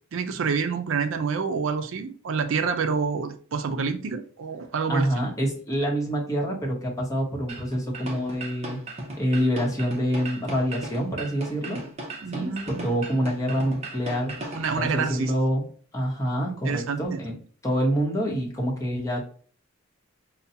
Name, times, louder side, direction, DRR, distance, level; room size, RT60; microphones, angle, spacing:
voice 1, 0.1-5.2 12.2-12.9 14.5-15.3 16.6-17.2, right 5 dB, 65° right, 0.4 m, -28 dB
voice 2, 4.9-8.8 9.2-11.8 12.3-15.6 15.9-17.3 17.6-19.2, equal, 15° left, 1.0 m, -26 dB
sound 1, 7.5-14.9, right 2 dB, 30° right, 0.8 m, -37 dB
5.4 x 2.2 x 2.7 m
head